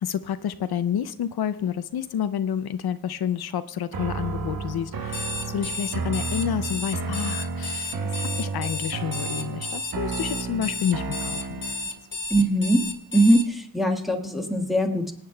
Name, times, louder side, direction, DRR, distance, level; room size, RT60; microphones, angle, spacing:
voice 1, 0.0-11.6, left 9 dB, 90° left, 12 dB, 0.5 m, -29 dB
sound 1, 3.9-12.0, right 4 dB, 65° right, 0.9 m, -32 dB
Alarm, 5.0-13.5, left 3 dB, 30° left, 1.0 m, -32 dB
voice 2, 12.3-12.9 13.1-15.1, right 1 dB, ahead, 1 dB, 1.5 m, -21 dB
25.5 x 8.9 x 2.3 m, 0.69 s
wide cardioid pair, 90°, 37 cm